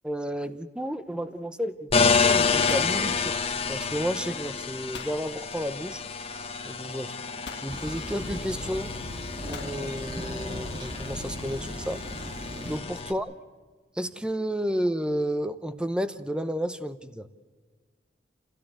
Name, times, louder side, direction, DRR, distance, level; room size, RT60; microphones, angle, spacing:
voice 1, 0.0-6.0 6.6-7.2 7.6-8.9 9.5-12.0 12.6-13.3 13.9-17.3, equal, 5° right, 11 dB, 0.8 m, -32 dB
sound 1, 1.1-1.4 1.6-2.1 2.3-3.9 4.9-5.3 6.4-6.5 7.5-7.8 9.5-9.8, left 5 dB, 70° left, 1.4 m, -43 dB
sound 2, 1.9-13.1, left 5 dB, 35° left, 1.2 m, -29 dB
Thunder, 7.7-12.8, right 1 dB, 25° right, 1.7 m, -38 dB
27.5 x 16.5 x 8.1 m, 1.5 s
head